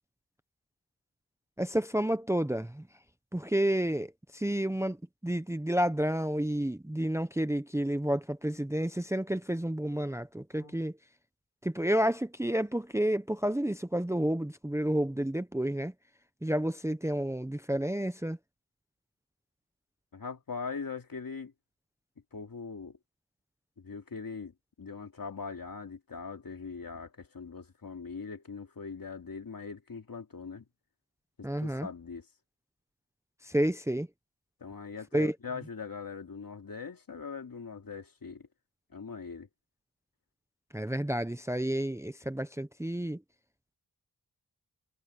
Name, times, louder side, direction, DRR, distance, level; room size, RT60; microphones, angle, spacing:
voice 1, 1.6-2.9 3.3-5.0 5.2-11.0 11.6-15.9 16.4-18.4 31.4-31.9 33.4-34.1 35.1-35.3 40.7-43.2, right 1 dB, 5° right, 0.7 m, -30 dB
voice 2, 20.1-21.5 22.3-23.0 23.8-30.6 31.4-32.3 34.6-38.5 38.9-39.5, left 5 dB, 60° left, 2.8 m, -41 dB
wide cardioid pair, 90°, 38 cm